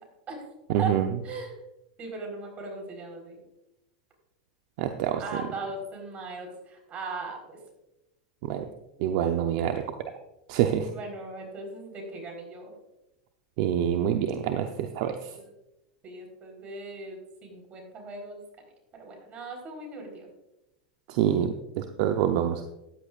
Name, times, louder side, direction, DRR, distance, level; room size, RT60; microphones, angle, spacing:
voice 1, 0.7-1.1 4.8-5.2 8.4-8.6 9.0-9.8 10.5-10.9 13.6-15.3 21.1-22.6, right 10 dB, 60° right, 6 dB, 0.8 m, -26 dB
voice 2, 1.2-1.6 2.0-3.4 5.2-7.6 10.9-12.7 15.1-15.4 16.0-18.6 18.9-20.3, right 3 dB, 35° right, 2 dB, 4.3 m, -38 dB
14.0 x 10.5 x 2.5 m, 0.92 s
hypercardioid pair, 105°, 4 cm